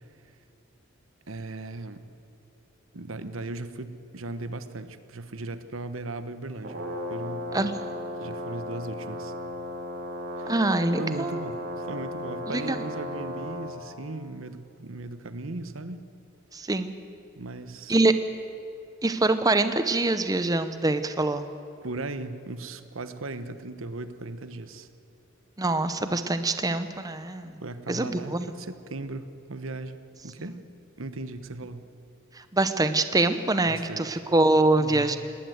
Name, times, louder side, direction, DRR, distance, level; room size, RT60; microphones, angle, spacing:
voice 1, 1.3-2.0 2.9-7.5 8.2-9.3 10.4-10.5 11.0-16.1 17.4-17.9 21.8-24.9 27.6-30.6 31.0-31.9 33.7-34.2 34.8-35.1, right 2 dB, 70° right, 11 dB, 1.1 m, -37 dB
Brass instrument, 6.6-13.7, left 1 dB, 55° right, 3.9 m, -35 dB
voice 2, 10.5-11.5 12.5-12.8 16.5-16.9 17.9-18.1 19.0-21.5 25.6-27.5 27.9-28.4 32.4-35.2, right 2 dB, 20° right, 10 dB, 0.7 m, -24 dB
19.5 x 19.0 x 8.0 m, 2.8 s
head